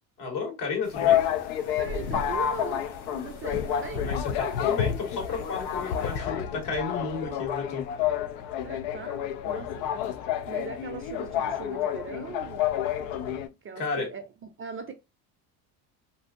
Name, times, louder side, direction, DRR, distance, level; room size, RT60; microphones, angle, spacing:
voice 1, 0.2-1.2 4.0-7.8 13.8-14.1, left 5 dB, 60° left, 1.5 m, -32 dB
sound 1, 0.8-6.2, left 2 dB, 40° left, 1.4 m, -51 dB
sound 2, 0.9-13.5, left 10 dB, 80° left, 0.6 m, -29 dB
voice 2, 1.8-4.2 8.6-9.9 10.4-12.7 13.6-14.3 14.6-14.9, right 6 dB, 30° right, 0.5 m, -40 dB
2.7 x 2.5 x 2.4 m
supercardioid pair, 95°, 44 cm